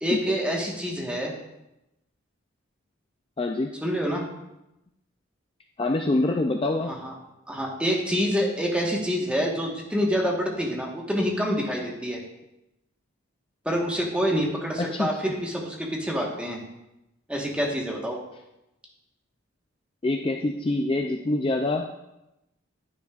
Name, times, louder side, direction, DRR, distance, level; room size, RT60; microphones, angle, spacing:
voice 1, 0.0-1.3 3.8-4.3 6.9-7.1 7.5-12.2 13.6-16.6 17.3-18.2, equal, 5° right, -2 dB, 1.3 m, -27 dB
voice 2, 3.4-3.7 5.8-6.9 14.9-15.1 20.0-22.0, left 2 dB, 25° left, 3 dB, 0.4 m, -25 dB
9.7 x 9.4 x 2.4 m, 0.91 s
head